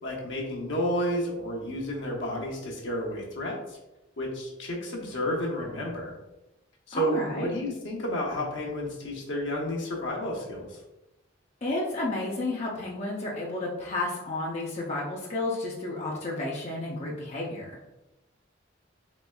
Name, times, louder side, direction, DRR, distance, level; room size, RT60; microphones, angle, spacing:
voice 1, 0.0-3.8 4.2-6.1 6.9-10.8, equal, 70° left, -2 dB, 0.9 m, -31 dB
voice 2, 6.9-7.5 11.6-17.8, left 2 dB, 35° left, -4 dB, 0.5 m, -32 dB
4.1 x 3.2 x 2.3 m, 0.97 s
head